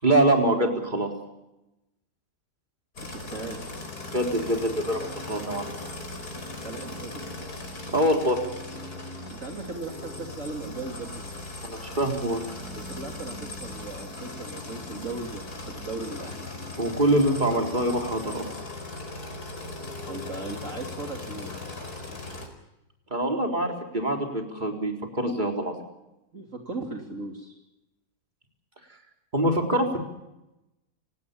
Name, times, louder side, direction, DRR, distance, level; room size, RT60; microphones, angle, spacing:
voice 1, 0.0-1.1 4.1-5.7 7.9-8.4 11.6-12.4 16.8-18.4 23.1-25.8 29.3-30.0, right 1 dB, 30° right, 2 dB, 4.3 m, -24 dB
sound 1, 3.0-22.5, left 2 dB, 80° left, 4.6 m, -38 dB
voice 2, 3.0-3.7 6.6-7.2 9.3-11.2 12.7-16.4 20.0-21.5 26.3-27.6, right 3 dB, 55° right, 2 dB, 3.3 m, -37 dB
30.0 x 18.0 x 7.0 m, 0.94 s
omnidirectional pair, 1.6 m